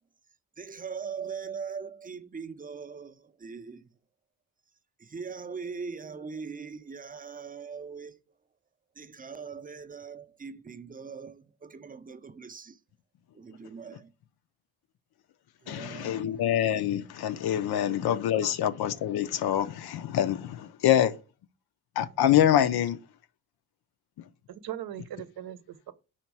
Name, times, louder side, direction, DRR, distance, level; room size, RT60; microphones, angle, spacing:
voice 1, 0.6-3.9 5.0-8.2 9.0-12.8 13.3-14.1 15.6-16.5, right 5 dB, 25° right, 0.5 m, -41 dB
voice 2, 15.7-21.2 22.0-23.0, left 11 dB, 80° left, 0.6 m, -25 dB
voice 3, 17.8-18.2 18.4-18.5 24.5-25.9, right 11 dB, 75° right, 0.7 m, -40 dB
5.2 x 4.4 x 4.6 m
cardioid pair, 105°, 38 cm